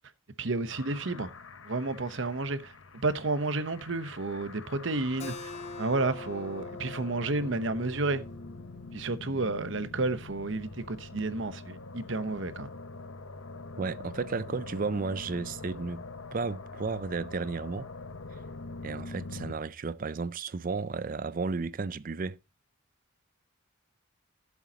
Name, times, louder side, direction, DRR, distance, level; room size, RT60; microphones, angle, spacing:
voice 1, 0.4-1.3 1.6-5.5 5.8-8.2 8.9-12.7, right 3 dB, 65° right, 1.0 m, -31 dB
sound 1, 0.7-19.5, left 3 dB, 75° left, 1.0 m, -44 dB
Keyboard (musical), 5.2-10.4, left 3 dB, 35° left, 0.6 m, -45 dB
voice 2, 13.8-16.0 16.3-17.9 18.8-22.4, right 4 dB, 40° right, 0.4 m, -33 dB
16.5 x 7.1 x 2.9 m
head